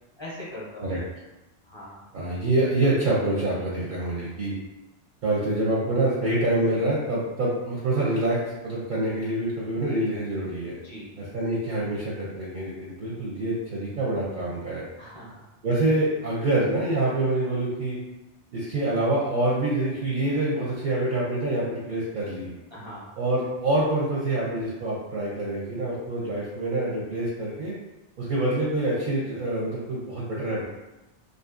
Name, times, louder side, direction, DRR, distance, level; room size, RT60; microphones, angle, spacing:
voice 1, 0.2-0.9 1.6-2.0 10.8-11.1 15.0-15.4 22.7-23.1, left 1 dB, 30° left, -7 dB, 0.6 m, -40 dB
voice 2, 2.1-4.6 5.2-10.8 11.2-14.8 15.6-18.0 18.5-22.5 23.2-27.8 28.2-30.7, right 1 dB, 60° right, -6 dB, 0.6 m, -26 dB
2.5 x 2.5 x 2.4 m, 1.0 s
omnidirectional pair, 1.2 m